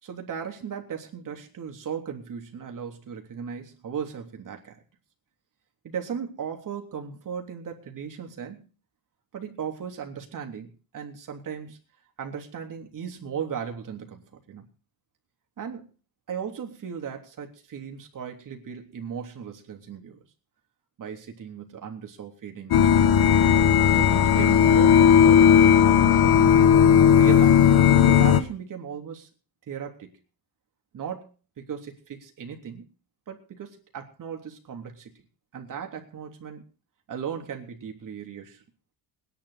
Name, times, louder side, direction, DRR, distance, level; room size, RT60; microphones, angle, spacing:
voice 1, 0.0-4.8 5.8-8.7 9.3-11.8 12.2-14.6 15.6-15.9 16.3-20.2 21.0-23.2 23.9-26.6 27.1-27.6 28.0-29.3 29.7-30.1 30.9-32.8 33.3-35.2 35.5-36.6 37.1-38.6, right 7 dB, 50° right, 3 dB, 3.4 m, -37 dB
sound 1, 22.7-28.4, left 8 dB, 60° left, 1.3 m, -16 dB
20.5 x 11.0 x 4.2 m, 0.36 s
cardioid pair, 120°, 41 cm